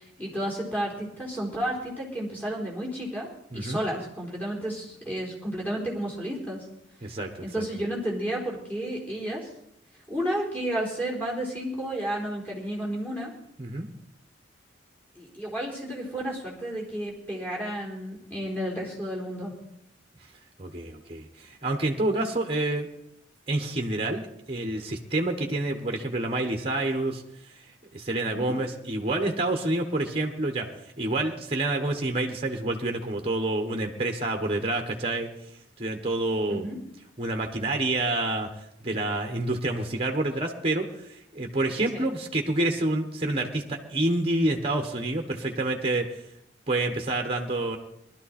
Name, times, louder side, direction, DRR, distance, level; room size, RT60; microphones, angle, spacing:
voice 1, 0.0-3.3 3.5-6.7 7.4-9.5 10.1-13.3 15.2-19.5 28.3-28.6 36.5-36.8 41.9-42.1, right 1 dB, 10° left, -3 dB, 4.0 m, -32 dB
voice 2, 3.5-3.8 7.0-7.4 13.6-13.9 20.6-22.9 23.5-27.2 27.6-27.7 27.9-30.7 31.0-35.3 35.8-36.6 37.2-38.5 38.8-46.2 46.7-47.8, right 2 dB, 30° right, 5 dB, 1.2 m, -28 dB
20.0 x 12.0 x 4.3 m, 0.76 s
head